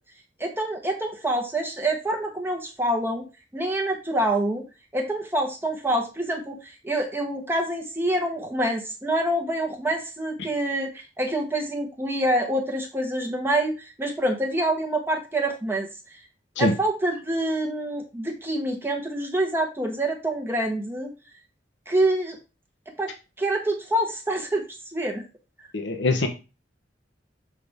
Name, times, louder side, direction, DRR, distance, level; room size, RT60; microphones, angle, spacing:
voice 1, 0.4-3.2 3.5-4.6 4.9-13.7 14.0-15.9 16.6-21.1 21.9-22.4 23.0-23.1 23.4-24.6 24.9-25.2, right 1 dB, 10° right, 1 dB, 1.2 m, -26 dB
voice 2, 25.7-26.3, left 2 dB, 70° left, 6 dB, 1.0 m, -23 dB
6.7 x 6.0 x 3.5 m, 0.29 s
head